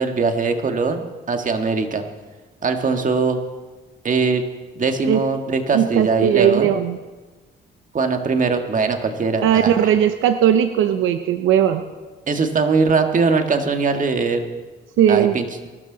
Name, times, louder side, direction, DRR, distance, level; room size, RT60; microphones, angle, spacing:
voice 1, 0.0-2.0 2.6-3.4 4.0-4.4 4.8-6.7 7.9-9.9 12.3-14.4 15.1-15.5, right 4 dB, 40° right, 5 dB, 1.8 m, -21 dB
voice 2, 5.7-7.0 9.4-11.8 15.0-15.3, right 10 dB, 85° right, 9 dB, 0.8 m, -17 dB
22.0 x 13.0 x 4.0 m, 1.3 s
cardioid pair, 90°, 20 cm